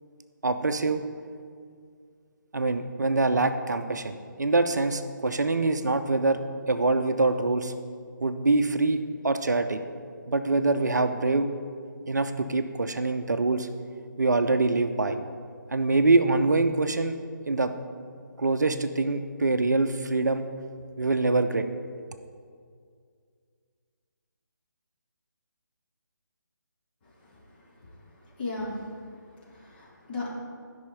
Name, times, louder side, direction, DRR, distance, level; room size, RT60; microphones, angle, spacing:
voice 1, 0.4-1.0 2.5-6.4 6.7-7.7 8.2-9.0 9.2-9.8 10.3-11.5 12.1-13.7 14.2-15.2 15.7-17.2 17.5-17.7 18.4-20.5 21.0-21.7, right 3 dB, 60° right, 8 dB, 0.6 m, -24 dB
voice 2, 27.2-27.6 27.9-28.0 28.4-29.0 29.4-30.3, left 2 dB, 30° left, -5 dB, 2.2 m, -36 dB
12.5 x 5.6 x 5.2 m, 2.1 s
figure-of-eight pair, 150°, 11 cm